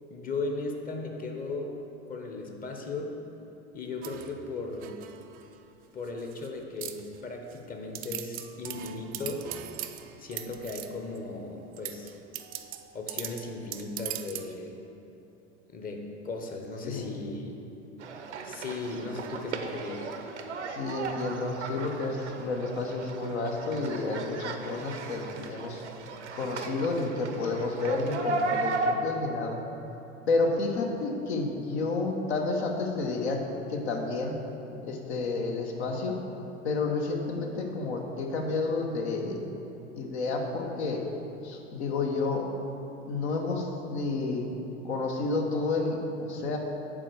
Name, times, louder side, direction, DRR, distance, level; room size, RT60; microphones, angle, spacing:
voice 1, 0.1-1.8 2.1-3.2 3.7-5.0 5.9-9.5 10.2-12.1 12.9-14.7 15.7-17.6 18.4-20.1, left 3 dB, 25° left, 2 dB, 1.0 m, -37 dB
sound 1, 4.0-5.6 6.1-6.5 6.8-7.6 7.9-11.2 11.7-14.5, right 12 dB, 25° right, 0.4 m, -41 dB
voice 2, 16.8-17.2 20.7-25.8 26.3-29.6 30.3-34.4 34.8-36.2 36.6-39.4 39.9-41.1 41.4-42.5 43.1-44.5 44.8-46.6, left 3 dB, 65° left, 2 dB, 1.1 m, -30 dB
sound 2, 18.0-28.9, right 3 dB, 75° right, 0.7 m, -35 dB
7.5 x 4.8 x 6.6 m, 2.9 s
figure-of-eight pair, 80°, 36 cm